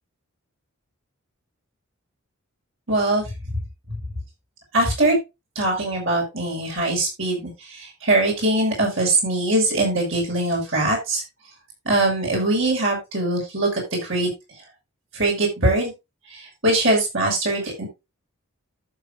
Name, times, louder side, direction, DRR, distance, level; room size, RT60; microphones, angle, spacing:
voice 1, 2.9-3.3 4.7-5.2 5.5-11.2 11.8-14.3 15.1-15.9 16.3-17.9, right 2 dB, 60° right, -2 dB, 6.3 m, -22 dB
14.0 x 7.2 x 2.6 m, 0.24 s
head